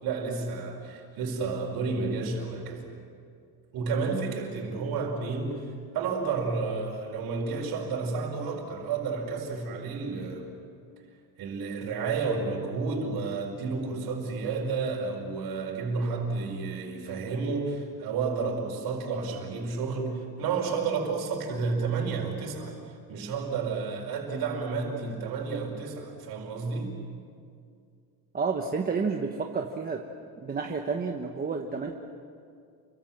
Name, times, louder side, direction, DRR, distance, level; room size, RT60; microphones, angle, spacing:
voice 1, 0.0-2.9 3.7-5.7 5.9-10.5 11.4-22.7 23.1-27.0, right 4 dB, 70° right, 1 dB, 5.1 m, -31 dB
voice 2, 28.3-30.0 30.4-31.9, right 5 dB, 25° right, 2 dB, 1.2 m, -30 dB
29.0 x 23.5 x 7.5 m, 2.3 s
cardioid pair, 170°, 40 cm